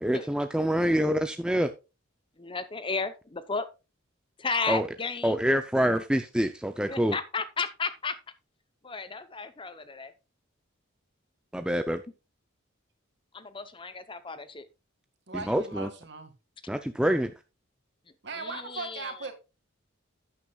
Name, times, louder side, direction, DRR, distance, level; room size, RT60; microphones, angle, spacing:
voice 1, 0.0-1.7 4.7-4.8 5.2-7.2 11.5-12.0 15.5-15.9 16.7-17.3, equal, 5° right, 0.5 m, -26 dB
voice 2, 2.4-3.7 4.4-5.4 6.9-8.2 8.8-10.1 13.3-14.7 18.3-19.1, left 4 dB, 25° left, 0.7 m, -33 dB
voice 3, 15.3-16.3 18.2-19.3, right 3 dB, 55° right, 2.0 m, -38 dB
11.5 x 9.4 x 2.3 m
head